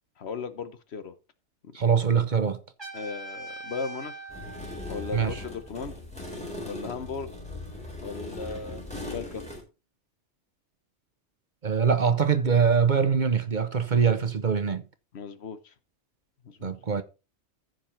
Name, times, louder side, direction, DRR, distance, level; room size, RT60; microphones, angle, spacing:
voice 1, 0.2-1.1 2.9-4.2 4.9-6.0 6.6-7.3 8.0-9.5 15.1-15.7 16.4-16.7, left 5 dB, 65° left, 1.2 m, -37 dB
voice 2, 1.7-2.6 5.1-5.4 11.6-14.8 16.6-17.0, right 6 dB, 45° right, 0.9 m, -23 dB
Trumpet, 2.8-5.6, right 2 dB, 20° right, 5.8 m, -42 dB
sound 1, 4.3-9.6, left 2 dB, 5° left, 4.1 m, -39 dB
14.5 x 5.3 x 4.3 m
omnidirectional pair, 1.2 m